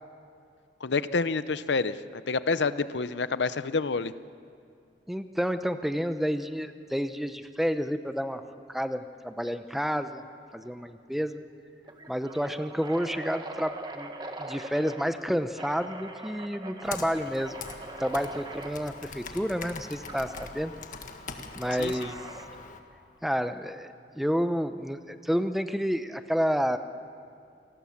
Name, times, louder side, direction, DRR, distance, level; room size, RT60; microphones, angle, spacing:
voice 1, 0.8-4.1 21.8-21.9, left 4 dB, 90° left, 14 dB, 0.7 m, -28 dB
voice 2, 5.1-8.4 8.7-10.2 10.5-11.4 12.1-17.5 18.0-20.7 21.6-22.2 23.2-26.8, equal, ahead, 9 dB, 0.8 m, -30 dB
sound 1, 10.6-10.9 11.2-11.3 11.8-15.1 15.6-18.8 20.1-20.5 21.6-22.6, right 2 dB, 25° right, 1.6 m, -42 dB
Computer keyboard, 16.8-22.8, left 4 dB, 50° left, 1.6 m, -42 dB
28.0 x 19.5 x 7.3 m, 2.5 s
head